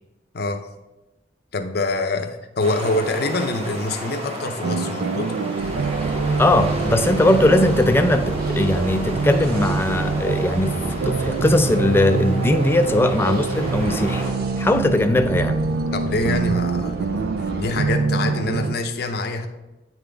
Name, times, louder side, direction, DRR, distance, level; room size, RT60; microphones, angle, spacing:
voice 1, 1.5-5.3 15.9-17.3 17.6-19.5, left 2 dB, 60° left, 6 dB, 0.6 m, -25 dB
sound 1, 2.6-14.3, right 1 dB, 35° right, 1.3 m, -33 dB
sound 2, 4.6-18.8, right 4 dB, 85° right, 0.4 m, -25 dB
sound 3, 5.6-17.9, right 1 dB, 55° right, 0.8 m, -33 dB
voice 2, 6.0-14.2 14.6-15.6, left 1 dB, 15° left, 7 dB, 0.3 m, -19 dB
9.2 x 3.8 x 3.4 m, 1.0 s
head